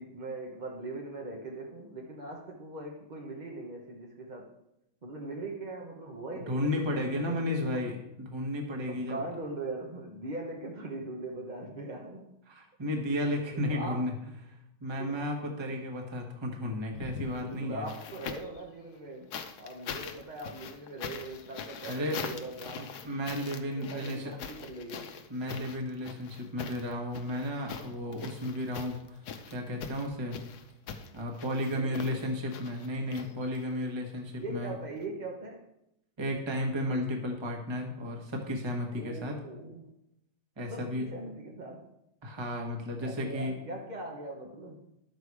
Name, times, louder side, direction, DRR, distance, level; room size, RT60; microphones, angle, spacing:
voice 1, 0.0-4.5 5.0-7.8 8.8-12.3 13.5-14.3 15.0-15.2 15.6-15.8 17.4-19.3 19.6-22.9 23.5-25.1 31.7-32.3 34.4-35.7 38.9-39.9 40.7-41.9 43.0-44.8, right 2 dB, 40° right, 0 dB, 0.6 m, -41 dB
voice 2, 6.3-9.2 12.5-14.1 14.5-17.9 21.9-22.2 22.6-24.3 25.3-29.2 29.5-30.4 31.1-34.7 36.2-39.3 40.6-41.1 42.2-43.5, left 1 dB, 15° right, 1 dB, 1.2 m, -33 dB
sound 1, 16.9-18.6 19.3-33.8 35.0-35.1, left 6 dB, 60° left, 1.1 m, -43 dB
11.5 x 6.9 x 4.7 m, 0.83 s
omnidirectional pair, 2.3 m